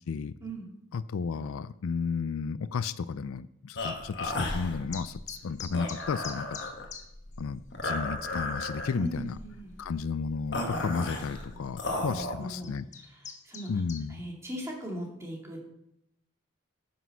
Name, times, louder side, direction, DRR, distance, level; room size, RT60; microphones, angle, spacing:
voice 1, 0.9-6.5 7.4-9.4 9.8-12.9 13.7-14.2, left 5 dB, 85° left, 15 dB, 0.4 m, -33 dB
sound 1, 3.8-12.3, left 2 dB, 55° left, 1.4 m, -35 dB
sound 2, 4.9-7.0 7.3-7.4 7.9-8.0 8.3-8.7 9.3-9.4 10.8-10.9 11.6-11.9 12.4-14.0, left 6 dB, 35° left, 1.1 m, -43 dB
voice 2, 8.9-9.7 12.0-12.7 13.1-13.7 14.1-15.6, right 1 dB, 15° right, -1 dB, 2.2 m, -39 dB
9.3 x 6.1 x 5.7 m, 0.81 s
head